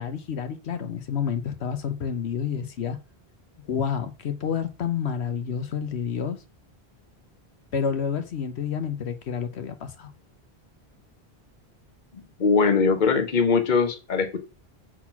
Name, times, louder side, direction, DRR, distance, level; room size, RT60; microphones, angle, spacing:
voice 1, 0.0-3.0 3.6-6.4 7.7-10.1, left 7 dB, 80° left, 1.1 m, -29 dB
voice 2, 12.4-14.4, left 5 dB, 50° left, 1.1 m, -21 dB
6.3 x 4.0 x 5.8 m
omnidirectional pair, 1.1 m